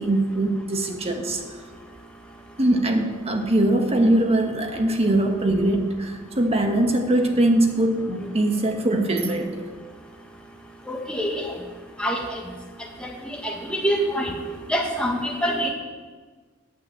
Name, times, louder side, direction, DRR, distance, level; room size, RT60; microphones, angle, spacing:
voice 1, 0.0-1.4 2.6-9.6, right 1 dB, 30° right, 4 dB, 1.3 m, -22 dB
voice 2, 10.9-11.5 12.0-12.4 13.4-15.7, equal, 5° left, 0 dB, 1.6 m, -25 dB
9.1 x 8.6 x 7.7 m, 1.4 s
head